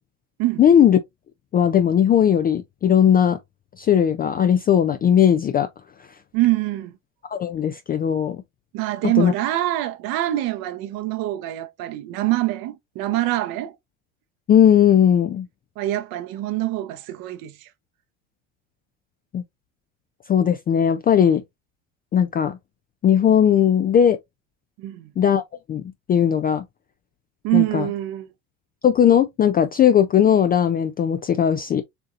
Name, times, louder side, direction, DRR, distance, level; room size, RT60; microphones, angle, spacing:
voice 1, 0.6-1.0 1.5-3.4 3.8-5.7 7.3-8.4 9.2-9.3 14.5-15.5 19.3-19.4 20.3-21.4 22.1-22.6 23.0-24.2 25.2-25.4 25.7-25.8 26.1-26.6 27.5-27.8 28.8-31.8, left 9 dB, 25° left, 0.3 m, -18 dB
voice 2, 6.3-6.9 8.7-13.8 15.8-17.7 24.8-25.1 27.4-28.3, right 16 dB, 55° right, 0.8 m, -24 dB
6.8 x 2.6 x 2.4 m
hypercardioid pair, 90°, 42 cm